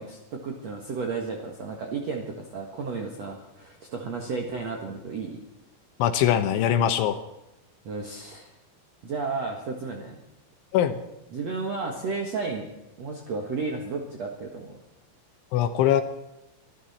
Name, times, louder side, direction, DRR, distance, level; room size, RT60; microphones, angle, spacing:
voice 1, 0.0-5.4 7.8-8.5 9.0-10.2 11.3-12.7 13.0-14.8, right 4 dB, 70° right, 1 dB, 1.6 m, -33 dB
voice 2, 6.0-7.2 10.7-11.0 15.5-16.0, left 10 dB, 75° left, 9 dB, 3.2 m, -22 dB
25.0 x 13.0 x 4.3 m, 0.92 s
omnidirectional pair, 5.8 m